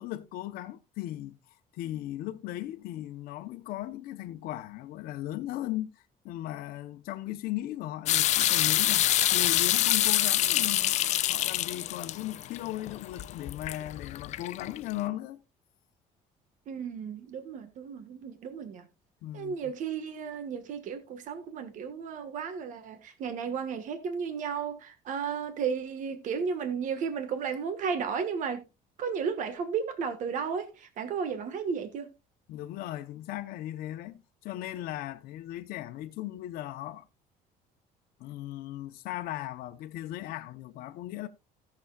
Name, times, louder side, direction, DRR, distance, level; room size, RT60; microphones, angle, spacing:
voice 1, 0.0-1.4 1.7-5.9 6.2-10.9 11.3-15.4 19.2-19.6 32.5-37.1 38.2-41.3, left 14 dB, 70° left, 0.8 m, -37 dB
sound 1, 8.1-14.9, left 13 dB, 50° left, 0.4 m, -26 dB
voice 2, 16.7-18.9 19.3-28.6 29.0-32.1, right 6 dB, 55° right, 1.4 m, -34 dB
17.0 x 7.0 x 2.3 m
cardioid pair, 140°, 16 cm